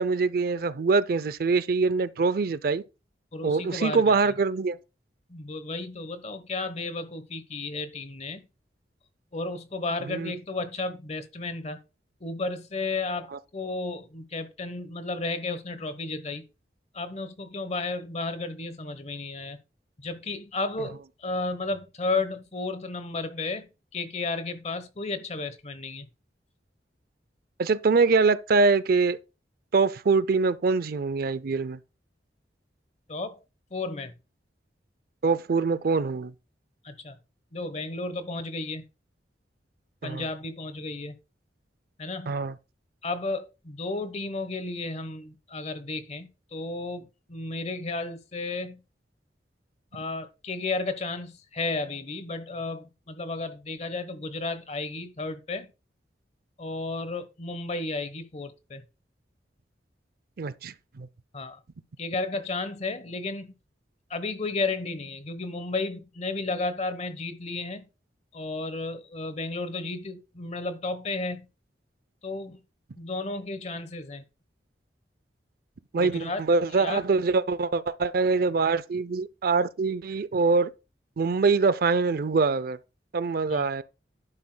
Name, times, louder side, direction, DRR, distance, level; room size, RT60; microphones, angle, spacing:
voice 1, 0.0-2.8 3.4-4.8 10.1-10.3 13.3-13.4 27.6-29.2 29.7-31.8 35.2-36.3 40.0-40.2 42.3-42.6 60.4-61.1 75.9-80.7 81.2-82.8 83.1-83.8, right 4 dB, 55° right, 0.5 m, -24 dB
voice 2, 3.3-4.3 5.3-8.4 9.3-11.8 12.2-16.4 16.9-19.6 20.0-26.1 33.1-33.4 33.7-34.1 36.8-37.2 37.5-38.9 40.0-41.1 42.0-42.4 43.0-48.8 49.9-55.7 56.6-58.8 61.3-61.6 62.0-63.5 64.1-67.9 68.3-71.5 72.2-72.6 73.0-74.2 76.0-76.4 76.8-77.0 83.5-83.7, left 3 dB, 40° left, 1.0 m, -33 dB
11.0 x 9.9 x 2.2 m
head